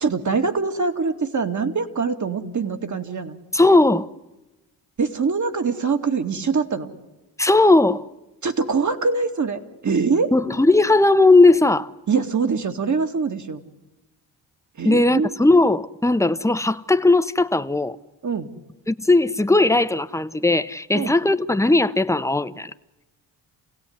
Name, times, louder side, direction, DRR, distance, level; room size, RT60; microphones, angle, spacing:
voice 1, 0.0-3.4 5.0-6.9 8.4-10.3 12.1-13.6 14.8-15.3 18.2-18.5 20.9-21.1, right 5 dB, 40° right, 2.6 m, -23 dB
voice 2, 3.5-4.1 7.4-8.0 10.3-11.9 14.8-18.0 18.9-22.7, left 2 dB, 5° left, 1.1 m, -17 dB
28.5 x 17.0 x 9.7 m
cardioid pair, 70°, 43 cm